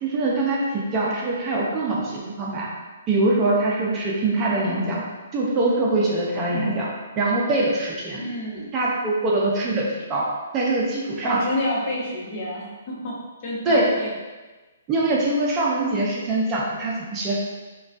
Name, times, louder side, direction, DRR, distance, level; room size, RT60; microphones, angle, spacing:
voice 1, 0.0-2.7 3.1-5.0 5.3-6.9 7.2-8.2 8.7-10.3 10.5-11.4 13.7-13.9 14.9-17.4, right 2 dB, 25° right, -4 dB, 0.6 m, -23 dB
voice 2, 8.1-8.7 11.2-14.1, left 1 dB, 40° left, -4 dB, 0.9 m, -29 dB
4.7 x 2.3 x 2.5 m, 1.3 s
hypercardioid pair, 150°, 0 cm